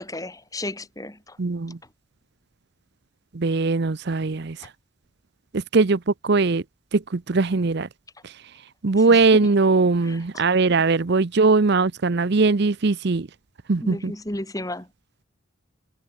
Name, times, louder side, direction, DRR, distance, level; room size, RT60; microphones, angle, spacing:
voice 1, 0.0-1.4 9.1-9.5 10.0-10.2 13.8-14.9, left 1 dB, 15° left, 2.3 m, -33 dB
voice 2, 1.4-1.8 3.3-4.6 5.5-6.6 6.9-7.9 8.2-8.3 8.8-13.3 13.7-14.1, right 3 dB, 50° right, 0.6 m, -20 dB
head